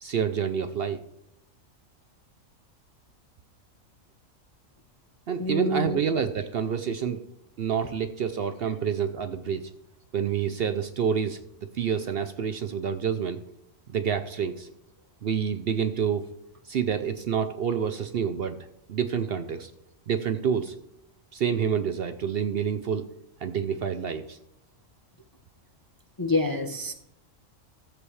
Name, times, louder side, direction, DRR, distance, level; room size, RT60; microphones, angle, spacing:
voice 1, 0.0-1.0 5.3-7.2 7.6-9.7 10.1-11.4 11.7-13.4 13.9-14.7 15.2-16.3 16.6-19.7 20.1-20.7 21.3-23.1 23.4-24.4, right 7 dB, 60° right, 9 dB, 0.7 m, -28 dB
voice 2, 5.4-6.0 26.2-26.9, left 2 dB, 25° left, 4 dB, 0.5 m, -27 dB
13.5 x 7.7 x 3.2 m, 0.79 s
omnidirectional pair, 1.4 m